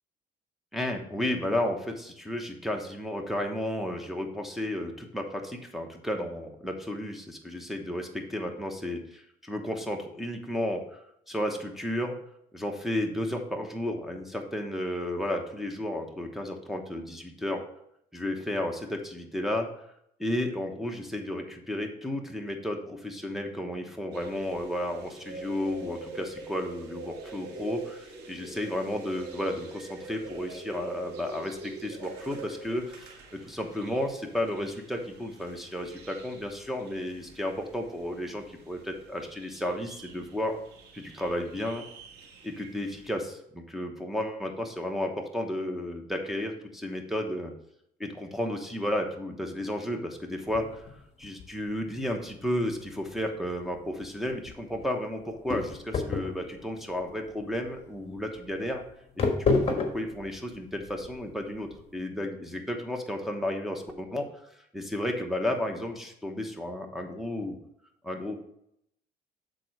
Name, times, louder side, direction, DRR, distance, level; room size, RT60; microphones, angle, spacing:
voice 1, 0.7-11.0 11.3-12.2 12.5-17.6 18.1-19.7 20.2-40.6 40.9-41.8 42.4-47.5 48.0-50.9 51.2-58.8 59.4-64.3 64.7-67.5 68.0-68.3, left 1 dB, ahead, 1 dB, 1.0 m, -33 dB
sound 1, 24.1-43.1, right 2 dB, 85° right, 1.6 m, -45 dB
sound 2, 50.4-61.9, left 4 dB, 35° left, 1.4 m, -33 dB
8.4 x 3.9 x 4.5 m, 0.74 s
cardioid pair, 110°, 17 cm